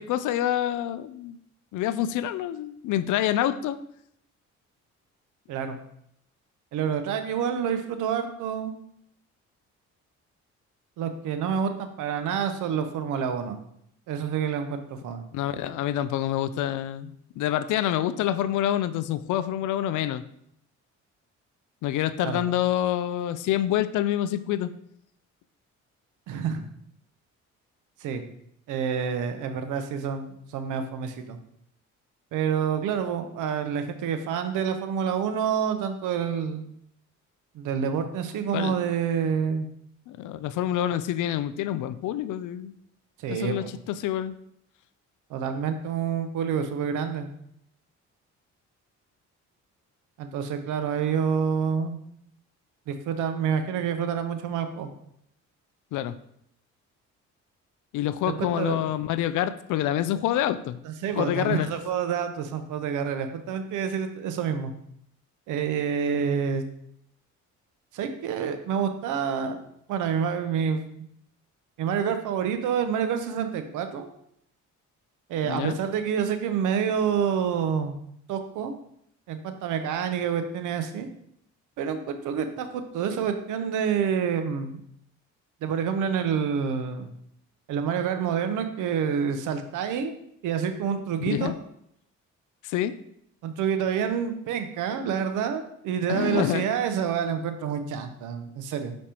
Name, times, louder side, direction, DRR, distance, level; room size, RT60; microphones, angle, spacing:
voice 1, 0.0-1.4 1.7-3.8 15.3-20.2 21.8-24.7 38.5-38.7 40.1-42.7 43.3-44.3 55.9-56.2 57.9-60.8 61.2-61.7 75.4-75.8 91.3-91.5 92.6-93.0 96.1-96.7, left 12 dB, 80° left, 14 dB, 0.5 m, -27 dB
voice 2, 6.7-8.7 11.0-13.6 14.1-15.2 22.2-22.4 26.3-26.6 28.0-28.2 28.7-31.4 32.3-36.7 37.5-39.7 43.2-43.7 45.3-47.3 50.2-52.0 52.9-54.9 58.2-58.8 60.8-64.7 65.5-66.6 67.9-69.6 69.9-70.8 71.8-74.1 75.3-77.9 78.3-78.7 79.3-81.1 81.8-84.8 85.6-87.1 87.7-90.1 90.4-91.5 93.4-99.0, right 7 dB, 85° right, 8 dB, 0.8 m, -28 dB
6.3 x 5.2 x 2.9 m, 0.73 s
cardioid pair, 90°, 30 cm